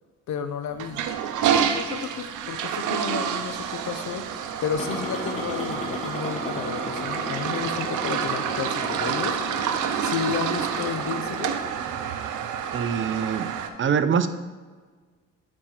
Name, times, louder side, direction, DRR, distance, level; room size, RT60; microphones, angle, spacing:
voice 1, 0.3-1.0 1.6-9.4 10.0-11.6, left 7 dB, 70° left, 9 dB, 0.8 m, -32 dB
Toilet flush, 0.7-13.7, right 8 dB, 85° right, 0.7 m, -28 dB
sound 1, 4.7-11.7, left 1 dB, 20° left, 1.8 m, -35 dB
voice 2, 12.7-13.5 13.8-14.3, right 7 dB, 40° right, 11 dB, 0.6 m, -24 dB
9.1 x 4.3 x 4.4 m, 1.4 s
cardioid pair, 90°, 30 cm